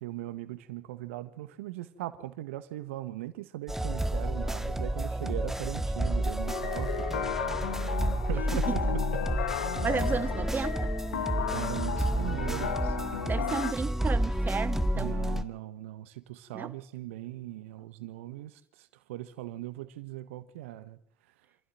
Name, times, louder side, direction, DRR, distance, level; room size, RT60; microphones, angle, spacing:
voice 1, 0.0-7.4 7.7-7.8 8.3-8.8 11.5-13.3 14.9-21.0, right 15 dB, 80° right, 1.5 m, -39 dB
sound 1, 3.7-15.4, right 1 dB, 5° right, 1.7 m, -30 dB
sound 2, 6.5-13.7, left 9 dB, 85° left, 1.2 m, -34 dB
voice 2, 9.8-10.9 13.2-15.1 16.5-16.7, right 5 dB, 25° right, 1.3 m, -33 dB
26.5 x 15.5 x 7.7 m
hypercardioid pair, 65°, 7 cm